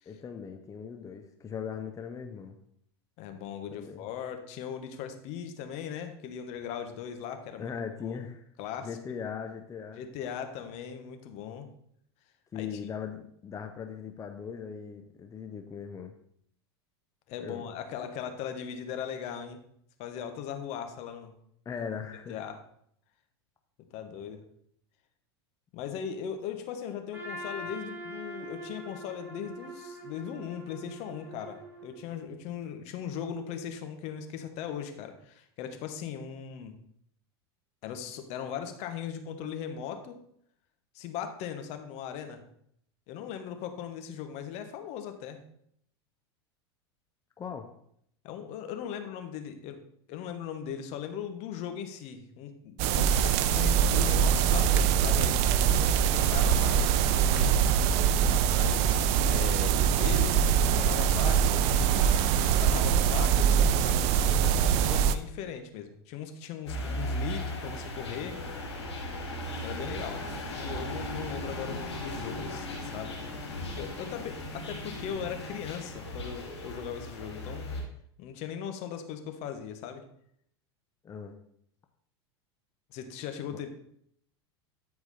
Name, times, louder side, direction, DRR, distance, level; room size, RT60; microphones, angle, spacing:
voice 1, 0.1-2.6 3.7-4.0 7.6-8.5 8.8-10.0 12.5-16.2 17.4-17.7 21.6-22.4 47.4-47.7 81.0-81.3 83.5-83.6, left 7 dB, 25° left, 5 dB, 0.7 m, -39 dB
voice 2, 3.2-7.7 8.0-8.2 8.6-8.9 10.0-11.7 12.5-12.8 17.3-19.6 20.0-21.3 22.3-22.6 23.9-24.4 25.7-36.7 37.8-40.2 40.9-42.4 43.1-45.4 48.2-49.8 50.1-57.7 58.5-68.4 69.6-73.2 73.7-77.7 78.2-80.0 82.9-83.7, left 8 dB, 50° left, 7 dB, 1.2 m, -39 dB
Trumpet, 27.1-32.2, equal, 15° right, 3.2 m, -43 dB
sound 1, 52.8-65.2, right 8 dB, 55° right, 0.6 m, -23 dB
sound 2, 66.6-77.8, left 1 dB, 90° left, 3.2 m, -37 dB
12.5 x 4.8 x 4.2 m, 0.69 s
hypercardioid pair, 90°, 14 cm